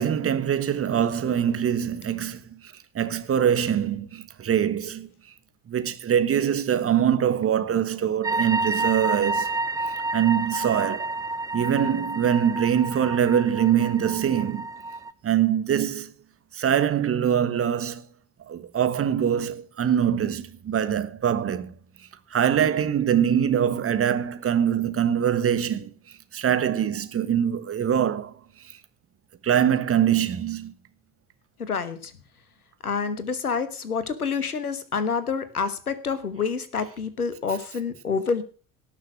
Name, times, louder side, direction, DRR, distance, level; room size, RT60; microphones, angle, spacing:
voice 1, 0.0-5.1 5.7-9.5 9.8-11.1 11.5-14.7 15.2-16.1 16.5-18.1 18.5-21.7 22.3-25.9 26.3-28.3 28.7-28.8 29.4-30.7, right 9 dB, 30° right, 1.5 m, -23 dB
sound 1, 8.2-15.1, right 2 dB, 10° right, 0.5 m, -30 dB
voice 2, 31.6-32.1 32.8-38.4, left 5 dB, 85° left, 1.3 m, -28 dB
18.0 x 6.5 x 6.2 m
figure-of-eight pair, 60°, 43 cm